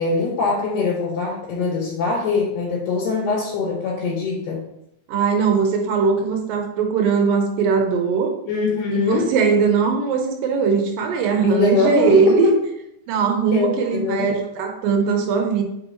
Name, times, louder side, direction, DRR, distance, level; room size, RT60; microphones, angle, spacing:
voice 1, 0.0-4.6 8.5-9.3 11.4-12.6 13.5-14.3, left 4 dB, 70° left, -5 dB, 3.5 m, -22 dB
voice 2, 5.1-8.3 8.9-12.5 13.1-15.6, right 6 dB, 75° right, 3 dB, 2.6 m, -20 dB
8.3 x 4.9 x 3.1 m, 0.82 s
omnidirectional pair, 4.1 m